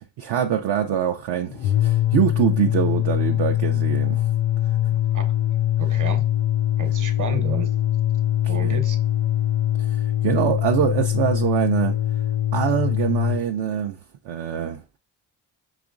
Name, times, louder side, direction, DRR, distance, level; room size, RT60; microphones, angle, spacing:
voice 1, 0.0-4.3 8.6-8.8 9.8-12.0 12.5-14.0 14.2-14.8, right 9 dB, 60° right, 0.5 m, -24 dB
sound 1, 1.5-13.4, left 12 dB, 75° left, 0.5 m, -22 dB
voice 2, 4.9-5.2 5.8-6.2 6.8-7.7 8.5-9.0, right 4 dB, 40° right, 1.0 m, -31 dB
4.9 x 3.0 x 2.4 m
supercardioid pair, 55°, 45 cm